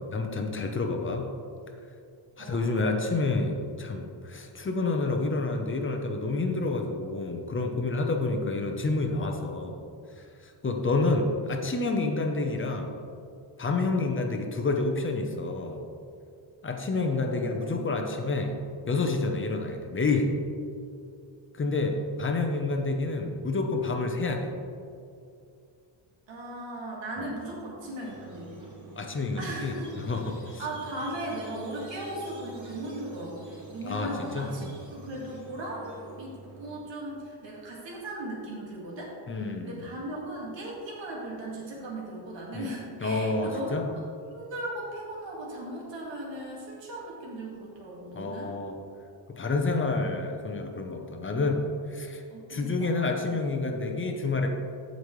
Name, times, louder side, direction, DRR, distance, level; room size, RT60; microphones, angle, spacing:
voice 1, 0.1-1.3 2.4-9.8 10.2-12.9 13.6-15.8 16.6-18.6 18.9-20.4 21.5-24.5 27.2-27.3 28.9-30.6 33.8-34.7 39.3-39.8 42.5-42.7 43.0-43.9 48.1-48.8 49.3-52.2 52.5-54.5, left 3 dB, 25° left, 3 dB, 0.7 m, -29 dB
voice 2, 17.0-18.0 21.7-21.8 26.3-28.7 29.4-30.0 30.6-39.1 39.6-43.8 44.3-48.5 52.3-53.1, right 1 dB, 60° right, -4 dB, 2.0 m, -38 dB
Squeak, 28.0-36.8, right 3 dB, 35° right, 1.9 m, -47 dB
14.5 x 5.3 x 3.2 m, 2.5 s
wide cardioid pair, 160°, 49 cm